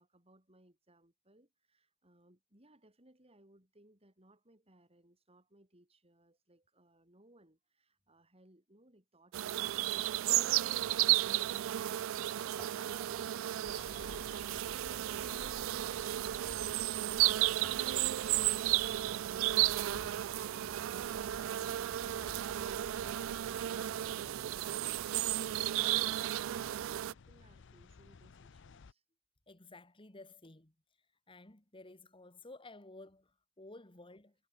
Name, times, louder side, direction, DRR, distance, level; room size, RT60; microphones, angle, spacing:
voice 1, 0.0-21.1 22.0-29.0, right 1 dB, 30° right, 6.8 m, -65 dB
sound 1, 9.3-27.1, right 14 dB, 70° right, 0.3 m, -33 dB
sound 2, 13.6-28.9, left 4 dB, 60° left, 0.6 m, -54 dB
Guitar, 17.6-21.2, equal, 5° left, 4.3 m, -64 dB
voice 2, 29.5-30.7 31.3-34.3, left 2 dB, 25° left, 2.1 m, -54 dB
head